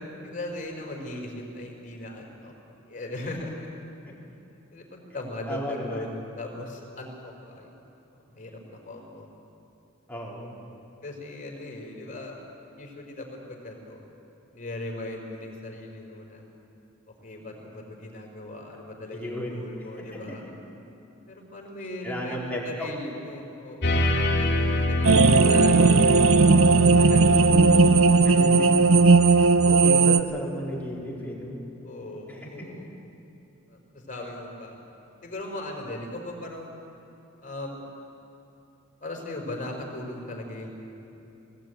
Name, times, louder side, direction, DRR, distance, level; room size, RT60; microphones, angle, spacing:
voice 1, 0.2-2.5 2.9-3.8 4.7-7.7 8.1-9.3 11.0-12.4 12.8-14.0 14.5-16.4 17.2-20.4 21.3-27.4 31.8-32.9 33.7-34.8 35.2-36.7 37.4-37.8 39.0-40.7, left 2 dB, 40° left, 1 dB, 4.3 m, -38 dB
voice 2, 5.5-6.0 10.1-10.5 19.1-19.6 20.0-20.4 22.0-22.9 27.5-27.9 28.2-28.7 29.3-31.6 32.3-32.7, equal, 10° left, -4 dB, 4.4 m, -34 dB
sound 1, 23.8-29.5, left 1 dB, 60° left, 2.3 m, -27 dB
sound 2, 25.0-30.2, right 4 dB, 80° right, 0.8 m, -17 dB
20.0 x 18.0 x 9.1 m, 2.9 s
head